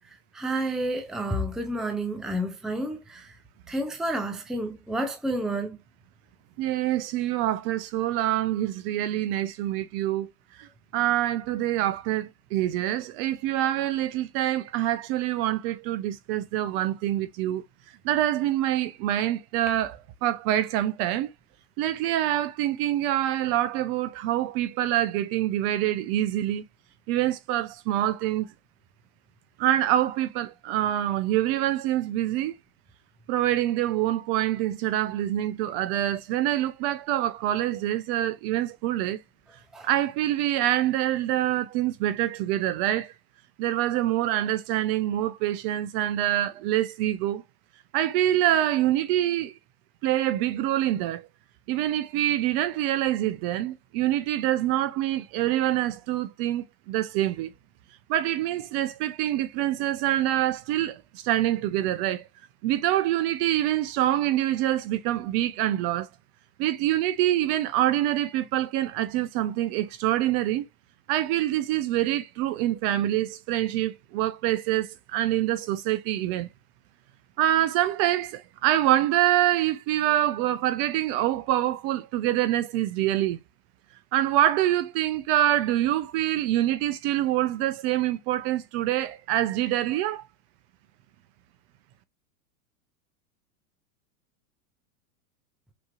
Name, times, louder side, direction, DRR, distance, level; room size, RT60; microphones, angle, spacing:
voice 1, 0.3-3.3 3.7-5.8 39.7-39.9, right 1 dB, ahead, 0.6 m, -30 dB
voice 2, 6.6-10.3 10.6-10.7 10.9-17.6 18.0-21.3 21.8-26.6 27.1-28.5 29.6-32.5 33.3-39.2 39.8-43.1 43.6-47.4 47.9-49.5 50.0-51.3 51.7-57.5 58.1-62.2 62.6-66.1 66.6-70.6 71.1-76.5 77.4-83.4 84.1-90.2, right 13 dB, 45° right, 0.7 m, -25 dB
6.0 x 2.9 x 2.5 m
hypercardioid pair, 125°, 45 cm